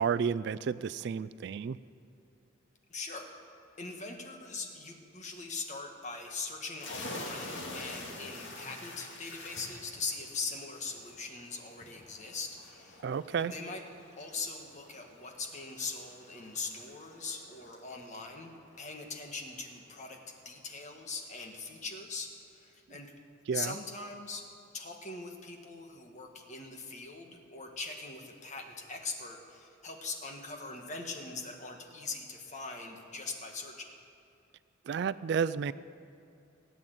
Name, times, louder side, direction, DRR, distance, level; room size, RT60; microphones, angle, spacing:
voice 1, 0.0-1.8 13.0-13.5 23.5-23.7 34.9-35.7, right 6 dB, 55° right, 16 dB, 0.3 m, -31 dB
voice 2, 2.9-3.3 3.8-13.0 13.4-13.8 14.2-18.5 18.8-23.1 23.5-24.4 24.7-33.9, left 4 dB, 35° left, 3 dB, 1.6 m, -41 dB
sound 1, 6.7-20.1, left 2 dB, 60° left, 2.1 m, -47 dB
18.5 x 9.1 x 7.8 m, 2.6 s
head